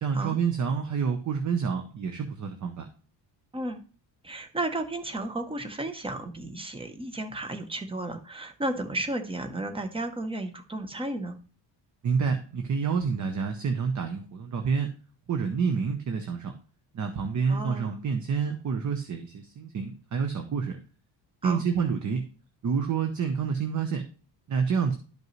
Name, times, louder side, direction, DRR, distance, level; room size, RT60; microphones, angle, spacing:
voice 1, 0.0-2.9 12.0-14.9 15.3-16.5 16.9-20.8 21.4-22.2 22.6-24.0 24.5-25.0, right 6 dB, 40° right, 6 dB, 0.8 m, -28 dB
voice 2, 4.2-11.4 17.5-17.9 21.4-21.6, right 1 dB, 10° right, 7 dB, 0.8 m, -33 dB
12.0 x 5.3 x 3.1 m, 0.38 s
wide cardioid pair, 165°, 44 cm